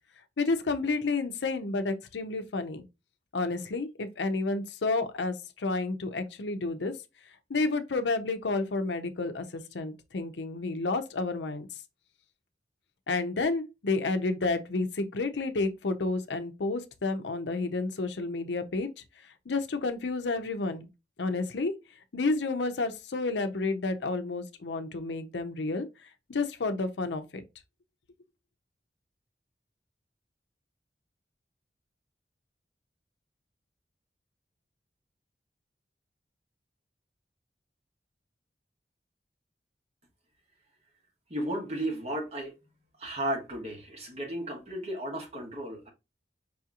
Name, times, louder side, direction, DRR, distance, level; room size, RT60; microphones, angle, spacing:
voice 1, 0.4-2.8 3.3-6.9 7.5-11.7 13.1-18.9 19.5-20.9 21.2-21.7 22.1-25.9 26.3-27.4, left 3 dB, 85° left, 0.6 m, -30 dB
voice 2, 41.3-42.6 43.0-45.9, right 1 dB, 35° right, 1.2 m, -34 dB
5.5 x 2.8 x 2.4 m
head